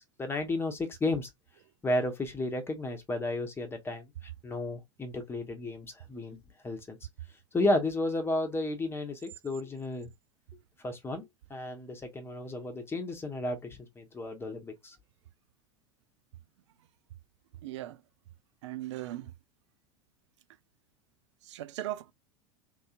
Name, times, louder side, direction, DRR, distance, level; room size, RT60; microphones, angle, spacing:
voice 1, 0.2-1.3 1.8-4.1 4.4-6.4 6.6-7.0 7.5-10.1 10.8-11.2 11.5-15.0, left 2 dB, 15° left, 1.0 m, -32 dB
voice 2, 17.6-18.0 18.6-19.3 21.4-22.1, right 14 dB, 60° right, 0.4 m, -38 dB
3.1 x 2.7 x 2.4 m
figure-of-eight pair, 80°, 16 cm